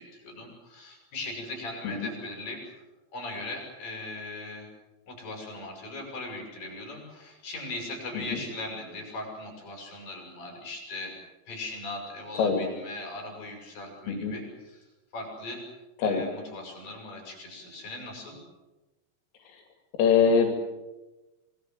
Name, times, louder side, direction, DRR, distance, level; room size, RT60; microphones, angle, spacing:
voice 1, 0.0-2.6 3.1-4.7 5.1-11.2 11.5-14.8 15.1-15.6 16.0-18.4, left 2 dB, 45° left, 1 dB, 8.9 m, -39 dB
voice 2, 20.0-20.5, left 6 dB, 85° left, 4 dB, 5.2 m, -23 dB
26.5 x 20.5 x 7.9 m, 1.1 s
omnidirectional pair, 5.7 m